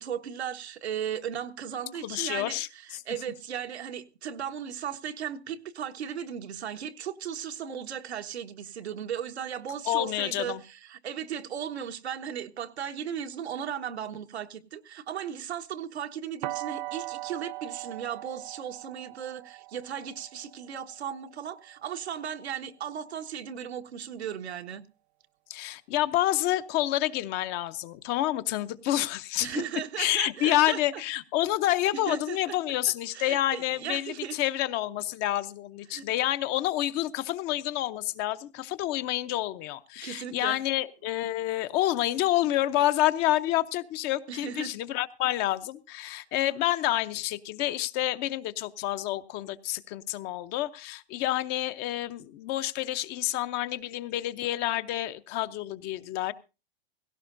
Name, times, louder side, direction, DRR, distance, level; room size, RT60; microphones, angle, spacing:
voice 1, 0.0-24.8 29.4-31.0 32.1-32.6 33.1-34.4 35.9-36.0 40.0-40.6 44.3-44.7, right 8 dB, 85° right, 1.4 m, -36 dB
voice 2, 2.0-3.0 9.9-10.6 25.5-29.5 30.0-56.3, left 14 dB, 30° left, 0.7 m, -28 dB
sound 1, 16.4-22.3, right 20 dB, 45° right, 0.6 m, -40 dB
17.0 x 16.5 x 2.6 m
hypercardioid pair, 135°, 32 cm